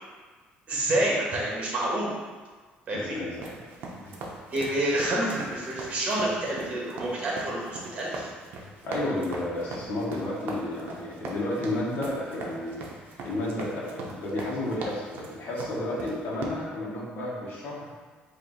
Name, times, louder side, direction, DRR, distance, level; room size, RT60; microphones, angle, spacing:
voice 1, 0.7-2.1 2.9-3.2 4.5-8.3, right 1 dB, 35° right, -4 dB, 1.2 m, -28 dB
voice 2, 3.1-3.7 4.0-4.2 8.8-12.8 13.2-17.9, left 1 dB, 55° left, -5 dB, 1.2 m, -32 dB
sound 1, 3.3-16.5, right 2 dB, 65° right, 0.7 m, -40 dB
4.5 x 2.7 x 3.9 m, 1.4 s
cardioid pair, 150°, 4 cm